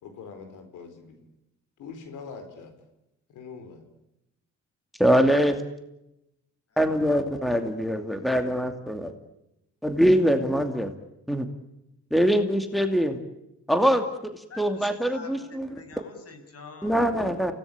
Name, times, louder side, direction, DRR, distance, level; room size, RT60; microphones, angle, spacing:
voice 1, 0.0-1.2 1.8-2.7 3.3-3.8, left 5 dB, 80° left, 7 dB, 4.5 m, -43 dB
voice 2, 5.0-5.6 6.8-9.1 9.8-10.9 11.3-11.5 12.1-13.2 13.7-15.7 16.8-17.5, equal, ahead, 7 dB, 2.6 m, -23 dB
voice 3, 14.5-17.0, left 3 dB, 50° left, 7 dB, 7.3 m, -46 dB
29.0 x 18.0 x 8.7 m, 0.87 s
cardioid pair, 90°, 30 cm